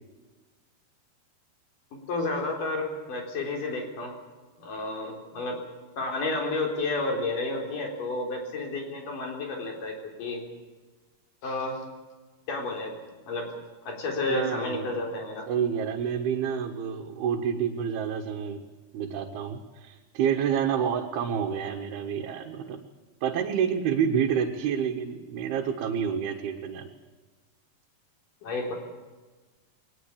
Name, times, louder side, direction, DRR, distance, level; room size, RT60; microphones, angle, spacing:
voice 1, 1.9-4.1 4.6-5.6 6.0-10.4 11.4-11.8 12.5-13.0 13.2-13.5 13.8-15.5 28.4-28.7, left 2 dB, 60° left, 2 dB, 5.4 m, -31 dB
voice 2, 14.3-14.9 15.5-18.6 18.9-22.8 23.2-26.9, right 8 dB, 85° right, 2 dB, 3.4 m, -28 dB
22.0 x 19.5 x 8.5 m, 1.3 s
omnidirectional pair, 4.4 m